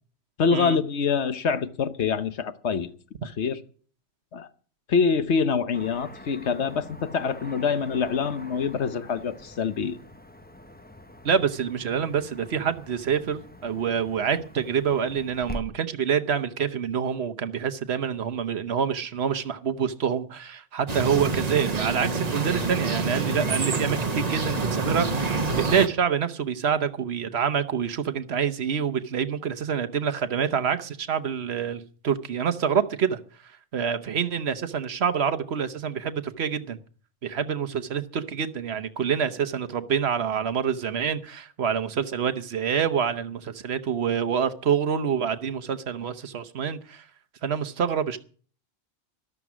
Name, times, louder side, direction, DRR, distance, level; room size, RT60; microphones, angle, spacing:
voice 1, 0.4-2.9 3.2-3.6 4.3-4.5 4.9-10.0, left 5 dB, 70° left, 1.2 m, -25 dB
Car passing by / Traffic noise roadway noise, 5.7-15.6, equal, 10° left, 0.9 m, -44 dB
voice 2, 11.2-33.2 33.7-36.8 37.2-47.0 47.4-48.2, right 7 dB, 65° right, 1.1 m, -27 dB
sound 1, 20.9-25.9, right 3 dB, 35° right, 1.2 m, -27 dB
13.5 x 12.5 x 6.1 m
omnidirectional pair, 1.2 m